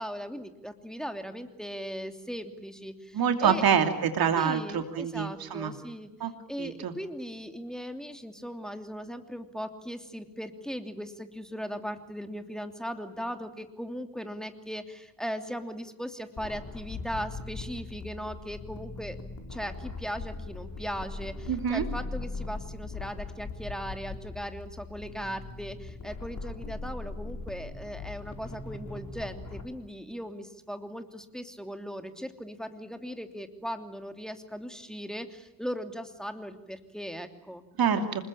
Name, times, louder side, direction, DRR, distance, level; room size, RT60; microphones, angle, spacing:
voice 1, 0.0-3.6 4.4-6.1 6.5-19.2 19.5-37.6, equal, ahead, 7 dB, 3.0 m, -38 dB
voice 2, 3.1-5.7 6.2-6.3 6.6-6.9 21.5-21.8 37.8-38.2, right 7 dB, 55° right, 7 dB, 2.8 m, -26 dB
sound 1, 16.4-29.6, left 3 dB, 40° left, 5.1 m, -40 dB
28.0 x 20.5 x 8.8 m, 0.94 s
hypercardioid pair, 45°, 43 cm